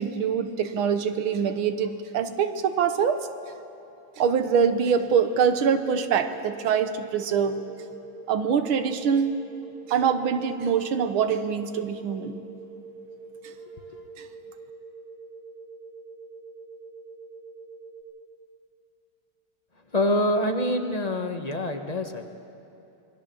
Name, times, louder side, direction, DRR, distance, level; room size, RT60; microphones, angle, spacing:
voice 1, 0.0-3.2 4.2-7.6 8.3-9.3 9.9-12.4, right 7 dB, 85° right, 9 dB, 1.9 m, -24 dB
sound 1, 5.4-18.0, right 4 dB, 5° left, 6.1 m, -44 dB
voice 2, 19.9-22.2, left 1 dB, 20° left, 4 dB, 1.2 m, -26 dB
27.0 x 21.0 x 7.1 m, 2.9 s
omnidirectional pair, 2.2 m